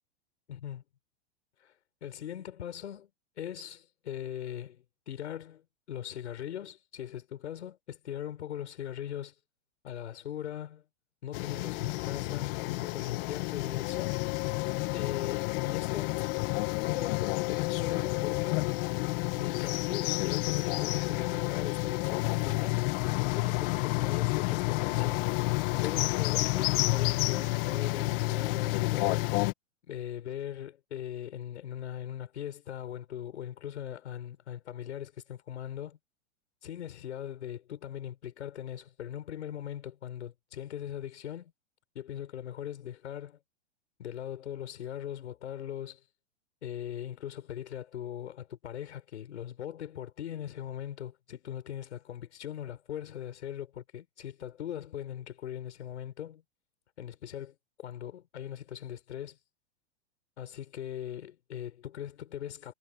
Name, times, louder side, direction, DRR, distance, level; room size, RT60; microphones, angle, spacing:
voice 1, 0.5-0.8 1.6-1.7 2.0-3.1 3.4-9.3 9.8-10.8 11.2-14.2 14.9-16.2 16.8-18.7 19.4-22.8 23.4-25.3 25.8-29.3 29.8-36.0 36.6-41.5 41.9-43.4 44.0-46.0 46.6-56.4 57.0-59.4 60.4-62.7, left 10 dB, 85° left, 7.3 m, -40 dB
sound 1, 11.3-29.5, left 23 dB, 55° left, 2.1 m, -30 dB
hypercardioid pair, 125°, 34 cm